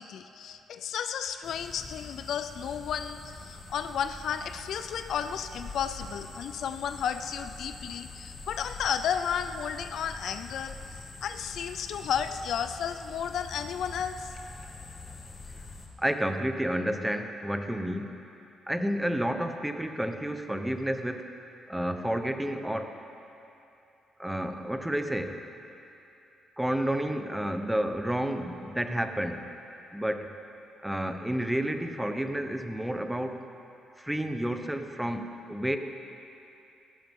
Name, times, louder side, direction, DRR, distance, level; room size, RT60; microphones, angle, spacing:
voice 1, 0.0-14.3, left 8 dB, 70° left, 9 dB, 0.5 m, -33 dB
sound 1, 1.4-15.9, left 3 dB, 40° left, 2.1 m, -44 dB
voice 2, 16.0-18.1 18.7-21.3 21.7-23.0 24.2-25.4 26.6-29.4 29.9-30.3 30.8-33.4 34.0-35.8, right 1 dB, 5° right, 7 dB, 0.9 m, -30 dB
16.5 x 15.5 x 3.7 m, 2.8 s
cardioid pair, 90°, 0 cm